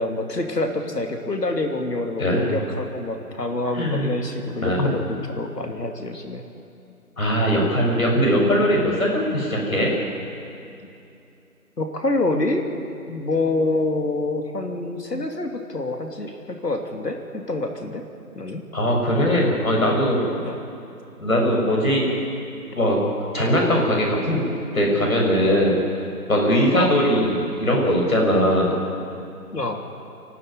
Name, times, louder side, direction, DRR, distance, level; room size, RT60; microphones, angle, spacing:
voice 1, 0.0-6.4 11.8-12.6 13.1-18.0 18.3-18.6 20.4-20.6 26.7-26.9 29.5-29.8, left 2 dB, 85° left, 4 dB, 2.9 m, -26 dB
voice 2, 2.2-2.5 3.7-4.1 4.6-4.9 7.2-9.9 18.7-20.2 21.2-22.1 22.7-23.0 23.3-24.5 24.7-25.8 26.3-28.8, equal, 60° left, -1 dB, 6.9 m, -20 dB
28.0 x 12.5 x 9.6 m, 2.7 s
figure-of-eight pair, 170°, 47 cm